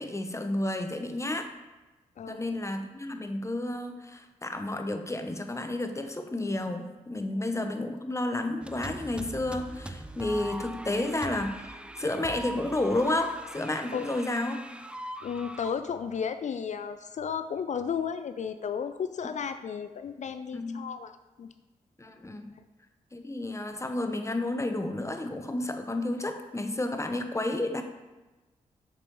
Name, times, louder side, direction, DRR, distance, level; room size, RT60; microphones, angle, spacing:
voice 1, 0.0-1.5 2.3-14.6 20.5-20.8 22.0-22.5 23.1-27.8, left 2 dB, 20° left, 7 dB, 0.7 m, -31 dB
voice 2, 2.2-2.6 7.3-7.5 13.9-14.1 15.2-21.5, left 7 dB, 55° left, 10 dB, 0.4 m, -34 dB
sound 1, 8.6-15.8, right 1 dB, 5° right, 0.4 m, -41 dB
6.7 x 5.2 x 3.0 m, 1.1 s
supercardioid pair, 40°, 15 cm